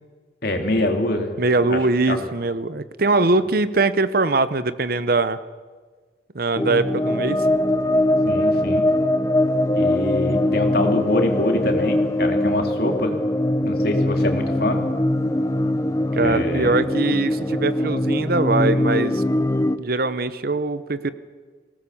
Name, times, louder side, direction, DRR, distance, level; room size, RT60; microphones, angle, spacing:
voice 1, 0.4-1.4 1.7-1.8 2.1-2.3 8.2-8.9 9.7-13.2 13.6-14.8 16.1-16.8, left 1 dB, 55° left, 4 dB, 2.6 m, -25 dB
voice 2, 1.4-5.4 6.3-7.4 16.1-19.2 19.8-21.1, right 3 dB, 55° right, 14 dB, 0.9 m, -22 dB
sound 1, 6.6-19.8, left 1 dB, 15° left, 0.6 m, -21 dB
20.5 x 18.0 x 7.1 m, 1.5 s
head